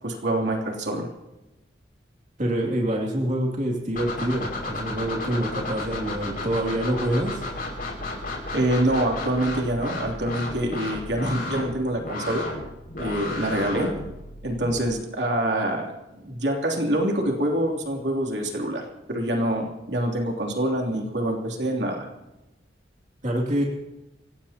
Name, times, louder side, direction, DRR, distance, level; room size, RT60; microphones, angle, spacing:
voice 1, 0.0-1.1 8.5-12.4 13.0-13.9 14.4-15.9 16.2-18.8 19.1-22.1, right 1 dB, 70° right, 0 dB, 3.0 m, -25 dB
voice 2, 2.4-7.4 23.2-23.6, right 1 dB, 45° right, -1 dB, 2.5 m, -26 dB
sound 1, 4.0-14.8, left 2 dB, 55° left, 5.7 m, -33 dB
27.5 x 16.5 x 2.9 m, 0.99 s
head